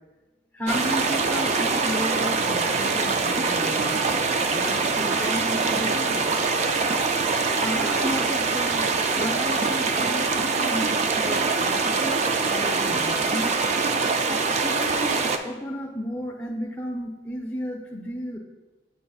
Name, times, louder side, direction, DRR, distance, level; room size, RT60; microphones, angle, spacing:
voice 1, 0.5-6.3 7.6-8.8 9.1-10.9 11.2-13.6 14.6-18.4, equal, 10° left, -1 dB, 0.7 m, -33 dB
sound 1, 0.7-15.4, right 4 dB, 35° right, 0.3 m, -24 dB
8.2 x 5.3 x 2.3 m, 1.2 s
head